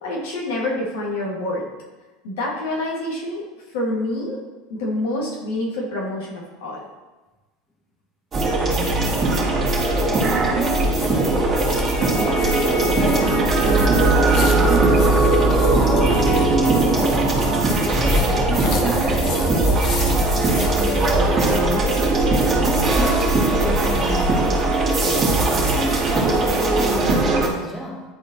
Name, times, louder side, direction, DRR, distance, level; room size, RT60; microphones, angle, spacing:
voice 1, 0.0-1.7 2.2-3.4 3.7-4.4 4.7-6.8, left 1 dB, 65° left, -3 dB, 1.8 m, -27 dB
sound 1, 8.3-27.5, right 2 dB, 30° right, 2.2 m, -19 dB
voice 2, 8.7-9.5 10.0-11.5 12.1-15.4 15.8-19.8 20.1-22.2 22.6-25.2 25.7-28.0, left 1 dB, 5° left, -2 dB, 1.5 m, -31 dB
sound 2, 9.4-21.6, left 4 dB, 50° left, 1.0 m, -37 dB
10.5 x 4.3 x 2.9 m, 1.2 s
figure-of-eight pair, 80°, 0 cm